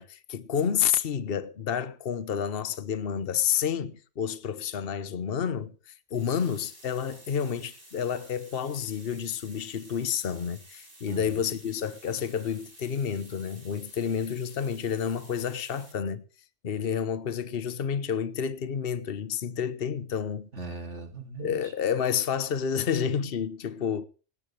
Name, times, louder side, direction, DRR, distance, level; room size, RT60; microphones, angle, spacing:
voice 1, 0.0-16.2 16.6-20.5 21.4-24.0, left 8 dB, 55° left, 1.2 m, -30 dB
sound 1, 6.1-15.9, right 1 dB, 45° right, 5.6 m, -53 dB
voice 2, 11.1-11.5 20.5-21.7, right 3 dB, 75° right, 2.9 m, -40 dB
18.5 x 18.0 x 3.2 m
omnidirectional pair, 1.2 m